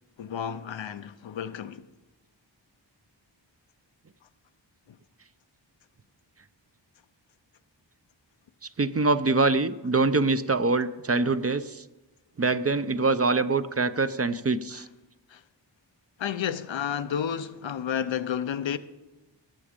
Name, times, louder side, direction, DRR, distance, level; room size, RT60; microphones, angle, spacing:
voice 1, 0.2-1.9 4.9-5.0 14.7-14.8 15.3-15.4 16.2-18.8, left 8 dB, 85° left, 0.7 m, -31 dB
voice 2, 8.8-11.8 12.4-14.8, right 3 dB, 35° right, 0.6 m, -24 dB
18.5 x 7.2 x 5.1 m
wide cardioid pair, 65°, 44 cm